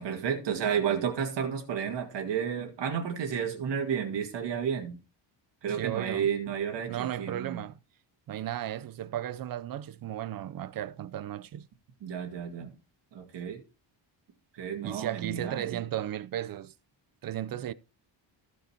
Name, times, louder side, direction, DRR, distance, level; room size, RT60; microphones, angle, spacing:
voice 1, 0.0-5.0 5.6-7.6 12.0-12.7 13.1-13.6 14.5-15.8, right 7 dB, 65° right, 2.2 m, -32 dB
voice 2, 5.7-6.3 6.9-7.8 8.3-11.7 14.8-16.7 17.2-17.7, right 12 dB, 50° right, 0.5 m, -35 dB
14.5 x 5.3 x 4.3 m
wide cardioid pair, 175°, 45 cm